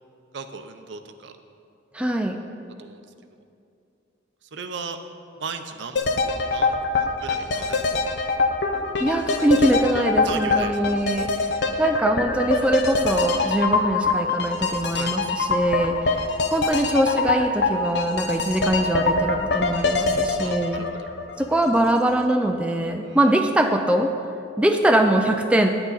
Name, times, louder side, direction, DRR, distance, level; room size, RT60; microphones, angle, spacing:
voice 1, 0.3-1.4 2.8-3.0 4.4-5.0 5.3-6.0 6.5-7.8 10.2-10.8 14.9-15.1 20.4-21.1 23.0-23.3, right 5 dB, 70° right, 8 dB, 0.6 m, -36 dB
voice 2, 1.9-2.4 9.0-11.3 11.8-16.3 16.5-20.8 21.4-24.1 24.6-25.7, right 1 dB, 5° right, 4 dB, 0.3 m, -22 dB
sound 1, 6.0-21.9 22.2-22.3, left 3 dB, 60° left, 0.6 m, -24 dB
9.2 x 8.8 x 4.0 m, 2.6 s
head